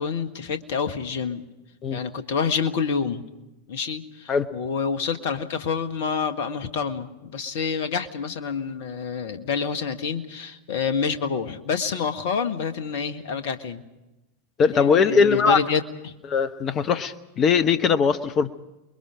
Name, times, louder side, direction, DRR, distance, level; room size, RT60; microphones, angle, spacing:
voice 1, 0.0-1.4 1.9-3.2 3.7-13.8 14.7-16.1, left 6 dB, 50° left, 9 dB, 1.5 m, -28 dB
voice 2, 14.6-15.6 16.3-18.5, left 6 dB, 30° left, 13 dB, 0.9 m, -20 dB
29.0 x 22.0 x 5.0 m, 1.0 s
figure-of-eight pair, 90°, 0 cm